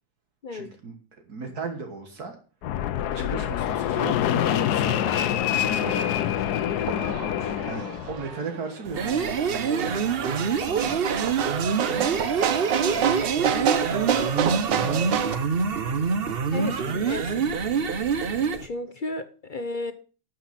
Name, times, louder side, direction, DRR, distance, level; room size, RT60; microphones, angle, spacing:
voice 1, 0.5-2.4 2.6-2.8 3.1-5.0 5.5-6.4 7.7-10.2 10.5-11.5 11.9-12.2 12.9-15.2 16.5-17.4, right 4 dB, 60° right, 2.0 m, -37 dB
Fixed-wing aircraft airplane, 2.6-8.3, left 11 dB, 70° left, 1.2 m, -26 dB
sound 1, 4.8-15.4, right 8 dB, 90° right, 1.7 m, -29 dB
sound 2, 8.9-18.7, right 5 dB, 45° right, 0.9 m, -26 dB
voice 2, 18.6-19.9, left 2 dB, 50° left, 0.6 m, -32 dB
12.5 x 6.3 x 5.8 m
omnidirectional pair, 1.9 m